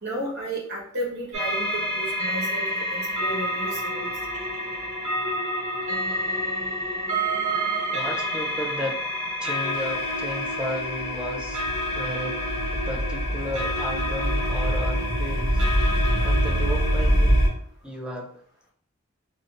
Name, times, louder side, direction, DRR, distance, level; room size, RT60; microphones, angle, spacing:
voice 1, 0.0-4.1, right 1 dB, 50° right, -3 dB, 1.2 m, -33 dB
sound 1, 1.3-17.5, equal, 30° right, 1.5 m, -26 dB
voice 2, 7.5-9.1 9.4-12.4 12.7-15.6 15.9-17.4 17.8-18.3, equal, 5° right, 0 dB, 0.4 m, -34 dB
3.8 x 2.8 x 2.5 m, 0.62 s
head